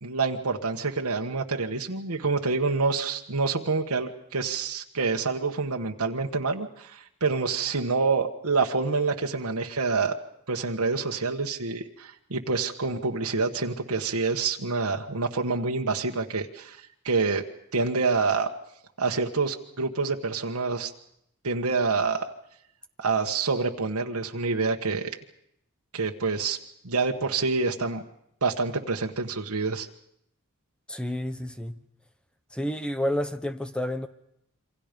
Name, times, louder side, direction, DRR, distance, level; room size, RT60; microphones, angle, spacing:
voice 1, 0.0-10.1 10.5-17.4 17.7-18.5 19.0-20.9 21.4-22.3 23.0-25.1 25.9-26.6 26.8-28.0 28.4-29.9, right 4 dB, 85° right, 1.5 m, -27 dB
voice 2, 30.9-31.8 32.5-34.1, left 1 dB, 5° left, 1.0 m, -30 dB
27.5 x 25.0 x 5.3 m
head